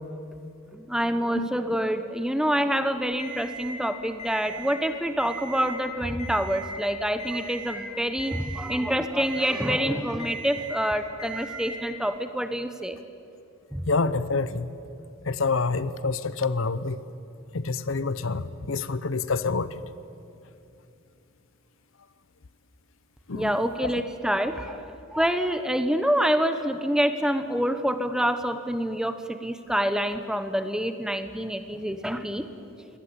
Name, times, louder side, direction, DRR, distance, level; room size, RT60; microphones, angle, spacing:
voice 1, 0.7-13.0 13.7-13.8 23.3-24.8 25.1-32.4, equal, 5° right, 9 dB, 1.0 m, -26 dB
Alarm, 3.2-3.7 4.2-4.7 5.1-5.7 6.2-6.7 7.2-7.7 8.2-8.7 9.2-9.7 10.2-10.7 11.2-11.7, right 3 dB, 30° left, 6.5 m, -38 dB
voice 2, 13.9-14.7 15.3-17.0 17.5-18.4 18.7-19.7 23.3-23.5, left 4 dB, 75° left, 15 dB, 0.8 m, -26 dB
24.0 x 18.0 x 8.7 m, 2.6 s
head